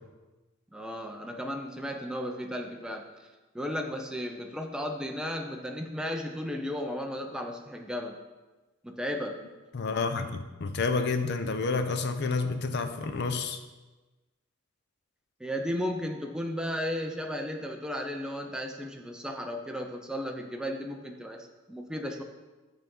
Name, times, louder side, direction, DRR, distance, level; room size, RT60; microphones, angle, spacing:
voice 1, 0.7-3.3 3.5-8.2 8.8-9.4 15.4-22.2, equal, 5° right, 2 dB, 0.4 m, -34 dB
voice 2, 9.7-13.6, left 4 dB, 60° left, 8 dB, 0.5 m, -29 dB
9.1 x 3.9 x 3.7 m, 1.2 s
head